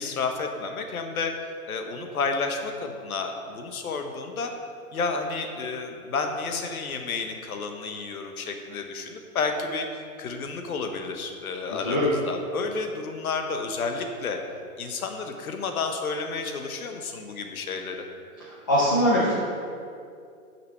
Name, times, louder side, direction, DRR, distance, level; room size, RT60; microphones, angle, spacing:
voice 1, 0.0-4.5 4.9-14.4 14.8-18.0, left 4 dB, 80° left, 5 dB, 1.1 m, -31 dB
voice 2, 18.7-19.3, left 1 dB, 15° left, -7 dB, 0.3 m, -21 dB
6.2 x 5.8 x 5.7 m, 2.4 s
hypercardioid pair, 145°, 43 cm